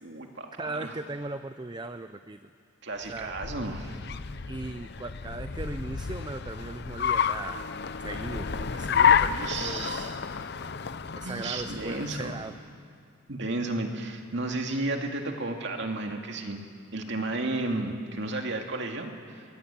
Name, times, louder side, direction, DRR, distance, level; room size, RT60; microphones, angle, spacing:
voice 1, 0.0-0.9 2.8-4.0 9.3-10.1 11.2-12.4 13.3-16.6 16.9-19.4, right 2 dB, 55° right, 3 dB, 2.4 m, -33 dB
voice 2, 0.5-2.5 3.1-3.4 4.5-7.6 8.0-10.1 11.2-12.5, right 2 dB, 20° right, 10 dB, 0.5 m, -38 dB
Car, 3.1-12.6, left 7 dB, 50° left, 0.6 m, -30 dB
24.0 x 22.0 x 8.9 m, 2.3 s
head